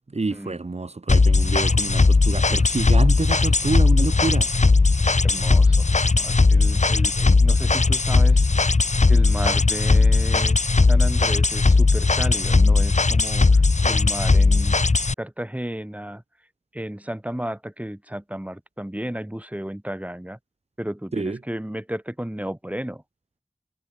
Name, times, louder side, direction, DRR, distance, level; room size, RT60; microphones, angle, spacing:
voice 1, 0.1-4.5 21.1-21.4, right 3 dB, 60° right, 2.1 m, -27 dB
sound 1, 1.1-15.1, left 3 dB, 70° left, 2.6 m, -18 dB
voice 2, 5.2-8.5 9.1-10.6 10.9-14.7 15.2-16.2 16.7-20.4 20.8-23.0, right 1 dB, 10° right, 5.6 m, -33 dB
wide cardioid pair, 60°, 12 cm